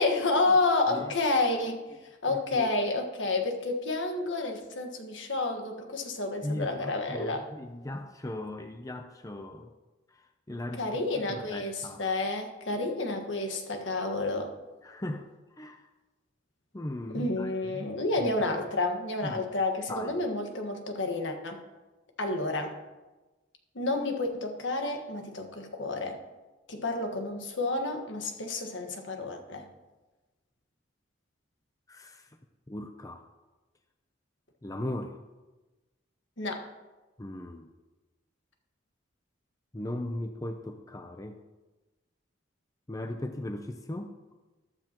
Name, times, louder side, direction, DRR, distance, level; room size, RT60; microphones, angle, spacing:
voice 1, 0.0-1.8 2.2-7.5 10.8-14.5 17.1-21.6 22.2-22.8 23.7-26.2 26.7-29.7 36.4-36.7, left 2 dB, 70° left, 4 dB, 1.5 m, -30 dB
voice 2, 2.3-2.7 6.4-9.7 10.1-12.1 14.8-15.3 15.6-15.9 16.7-17.9 18.2-18.3 18.6-18.7 19.2-19.4 19.9-20.1 31.9-32.3 32.7-33.3 34.6-35.2 37.2-37.7 39.7-41.4 42.9-44.2, left 1 dB, 15° left, 6 dB, 0.6 m, -38 dB
14.0 x 12.5 x 3.0 m, 1.2 s
head